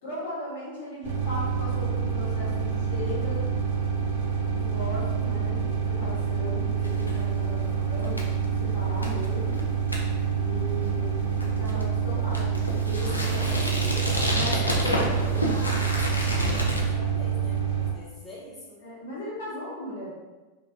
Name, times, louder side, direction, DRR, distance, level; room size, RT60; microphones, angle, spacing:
voice 1, 0.0-3.5 4.1-9.6 10.3-13.5 14.3-15.3 18.8-20.1, left 1 dB, 55° left, -7 dB, 1.0 m, -37 dB
sound 1, 1.0-17.9, right 7 dB, 55° right, 0.5 m, -27 dB
sound 2, 6.8-16.8, left 1 dB, 85° left, 0.4 m, -31 dB
voice 2, 13.2-18.8, equal, 5° left, -8 dB, 0.7 m, -43 dB
2.4 x 2.2 x 2.4 m, 1.2 s
figure-of-eight pair, 90°, 0 cm